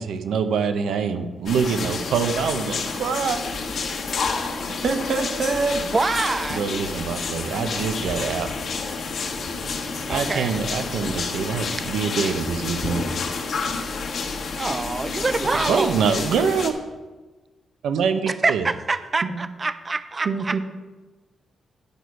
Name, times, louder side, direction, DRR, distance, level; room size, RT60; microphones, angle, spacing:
voice 1, 0.0-3.5 6.5-8.5 10.1-13.1 15.7-16.7 17.8-18.7, right 6 dB, 90° right, 8 dB, 0.8 m, -25 dB
sound 1, 1.5-16.7, left 4 dB, 60° left, 1.3 m, -29 dB
voice 2, 4.7-5.8 15.2-15.7 19.2-19.4 20.2-20.6, right 4 dB, 55° right, 6 dB, 1.1 m, -26 dB
voice 3, 5.9-6.6 10.1-10.6 14.6-16.0 18.2-20.6, right 3 dB, 25° right, 13 dB, 0.4 m, -25 dB
11.0 x 6.4 x 4.6 m, 1.2 s
cardioid pair, 140°, 0 cm